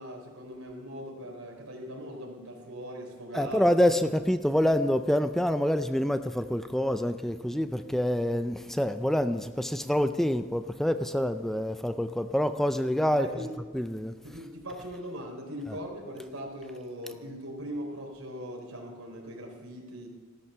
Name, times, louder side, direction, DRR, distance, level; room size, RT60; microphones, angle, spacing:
voice 1, 0.0-4.0 13.2-13.5 14.2-20.1, equal, 90° right, 3.8 m, -40 dB
voice 2, 3.3-13.3 13.7-14.2, equal, ahead, 0.4 m, -26 dB
15.0 x 13.5 x 5.7 m
head